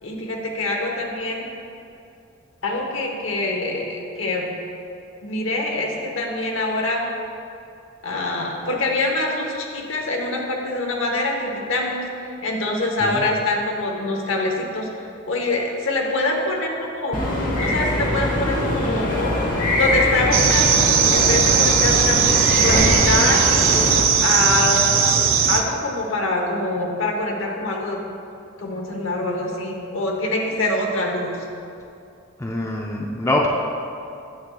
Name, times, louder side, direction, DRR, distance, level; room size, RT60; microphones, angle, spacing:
voice 1, 0.0-1.5 2.6-4.5 5.2-7.1 8.0-12.1 12.4-14.9 15.3-17.2 17.6-19.5 19.8-23.4 24.2-28.0 28.6-31.4, left 2 dB, 75° left, 1 dB, 1.0 m, -24 dB
sound 1, 17.1-24.0, left 1 dB, 40° left, 1.0 m, -22 dB
sound 2, 20.3-25.6, right 7 dB, 75° right, 0.4 m, -18 dB
voice 2, 32.4-33.5, left 1 dB, 15° left, -2 dB, 0.4 m, -24 dB
9.4 x 7.3 x 2.3 m, 2.6 s
head